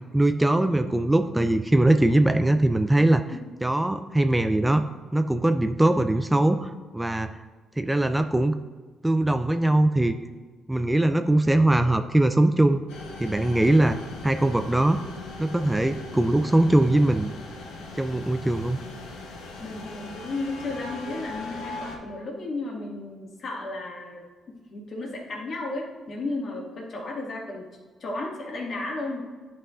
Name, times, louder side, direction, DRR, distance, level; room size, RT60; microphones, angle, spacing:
voice 1, 0.1-3.2 3.6-4.8 5.1-7.4 7.8-8.5 9.0-10.1 10.7-12.8 13.2-15.0 15.4-17.3 18.0-18.8, right 1 dB, 10° right, 8 dB, 0.3 m, -21 dB
sound 1, 12.9-22.0, left 3 dB, 90° left, 1.0 m, -40 dB
voice 2, 18.7-19.0 19.6-24.2 24.7-27.7 28.0-29.2, left 2 dB, 55° left, -1 dB, 1.8 m, -34 dB
10.0 x 5.4 x 2.4 m, 1.4 s
cardioid pair, 90°, 0 cm